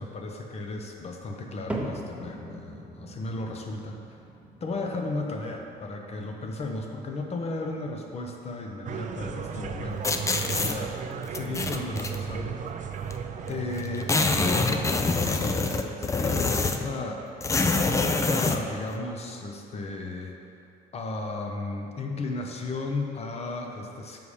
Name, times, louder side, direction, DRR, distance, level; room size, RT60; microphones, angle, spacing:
voice 1, 0.0-4.0 4.6-11.0 11.3-12.6 13.0-13.1 13.5-20.4 20.9-24.2, left 3 dB, 40° left, 2 dB, 0.9 m, -34 dB
sound 1, 1.7-18.0 18.3-18.9 19.5-19.6 20.4-20.5, right 2 dB, 5° right, 0.8 m, -44 dB
sound 2, 8.9-14.9, right 7 dB, 45° right, 0.5 m, -35 dB
sound 3, 10.0-10.7 11.3-12.2 13.1-13.2 13.4-13.5 13.8-16.9 17.4-18.6, left 3 dB, 20° left, 0.4 m, -25 dB
6.9 x 5.5 x 4.9 m, 2.6 s
cardioid pair, 110°, 17 cm